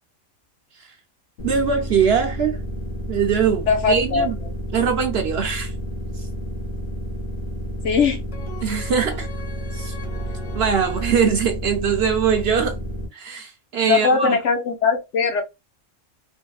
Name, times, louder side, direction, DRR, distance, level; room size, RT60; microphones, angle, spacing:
sound 1, 1.4-13.1, equal, 80° left, 1.7 m, -31 dB
voice 1, 1.4-2.6 3.1-4.4 4.7-5.7 8.6-9.3 9.7-9.9 10.5-12.8 13.1-14.4, right 6 dB, 60° right, 0.7 m, -21 dB
voice 2, 3.7-4.3 7.8-8.2 13.8-15.4, left 5 dB, 65° left, 1.2 m, -20 dB
sound 2, 8.3-11.3, right 1 dB, 25° left, 1.4 m, -38 dB
3.5 x 3.0 x 2.3 m
omnidirectional pair, 1.4 m